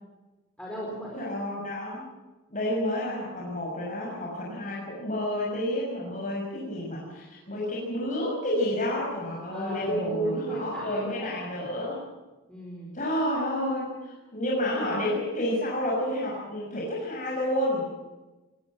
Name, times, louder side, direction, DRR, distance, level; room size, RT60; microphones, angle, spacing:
voice 1, 0.6-1.3 9.5-11.3 12.5-12.9, right 2 dB, 5° left, -3 dB, 4.6 m, -33 dB
voice 2, 1.1-2.1 2.5-12.0 12.9-17.9, left 1 dB, 35° left, -4 dB, 6.2 m, -30 dB
21.0 x 18.5 x 7.5 m, 1.1 s
head